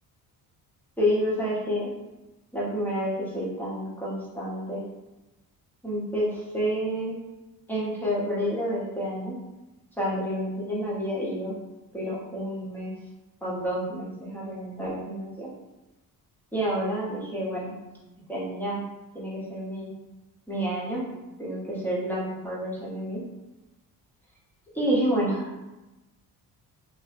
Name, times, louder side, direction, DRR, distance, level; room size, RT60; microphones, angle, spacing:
voice 1, 1.0-1.9 2.5-4.8 5.8-7.2 7.7-9.4 10.0-11.5 11.9-12.9 13.4-15.5 16.5-17.7 18.3-18.8 19.1-19.9 20.5-21.0 21.4-23.2 24.7-25.6, equal, 5° left, -7 dB, 0.9 m, -29 dB
2.8 x 2.1 x 3.3 m, 1.0 s
cardioid pair, 120°, 37 cm